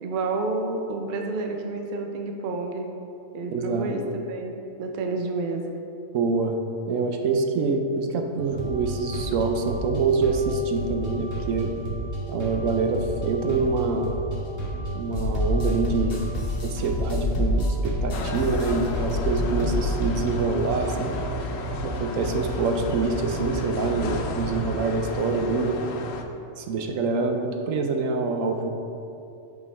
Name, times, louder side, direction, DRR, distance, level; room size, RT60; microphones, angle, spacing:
voice 1, 0.0-2.9 3.3-5.7, right 3 dB, 55° right, 3 dB, 0.6 m, -29 dB
voice 2, 3.5-4.0 6.1-6.6 6.9-11.7 12.3-14.2 14.9-16.3 16.6-21.1 21.8-25.8 26.6-28.7, right 4 dB, 80° right, 4 dB, 1.0 m, -26 dB
sound 1, 8.4-24.6, right 2 dB, 15° right, 1.5 m, -33 dB
sound 2, 15.1-20.3, left 2 dB, 50° left, 1.0 m, -27 dB
sound 3, 18.1-26.2, left 2 dB, 80° left, 1.0 m, -33 dB
8.2 x 4.5 x 3.2 m, 2.7 s
omnidirectional pair, 1.4 m